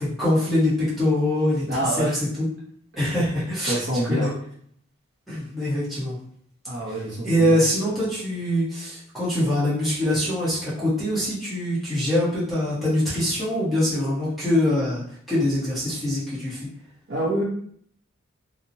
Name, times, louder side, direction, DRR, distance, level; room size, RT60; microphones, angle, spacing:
voice 1, 0.0-1.6 2.0-2.1 2.4-2.5 3.0-3.8 4.1-4.3 5.3-6.2 6.9-7.0 7.2-16.6, left 1 dB, ahead, -11 dB, 0.8 m, -23 dB
voice 2, 1.6-2.2 3.7-4.3 6.6-7.6 17.1-17.4, right 1 dB, 60° right, -6 dB, 0.6 m, -26 dB
2.7 x 2.0 x 2.6 m, 0.63 s
head